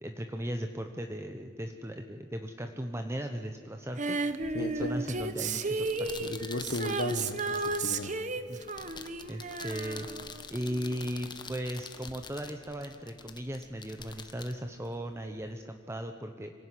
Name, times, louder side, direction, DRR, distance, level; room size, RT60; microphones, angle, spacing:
voice 1, 0.0-4.2 4.6-6.4 8.5-8.6 9.3-10.1 10.5-16.5, equal, 15° right, 6 dB, 0.9 m, -37 dB
Female singing, 4.0-10.9 12.1-12.2, right 3 dB, 40° right, 1.2 m, -34 dB
voice 2, 4.5-5.0 6.3-8.1, left 2 dB, 55° left, 8 dB, 0.9 m, -35 dB
sound 1, 5.8-15.5, left 5 dB, 25° left, 1.4 m, -47 dB
25.5 x 17.5 x 9.9 m, 2.2 s
head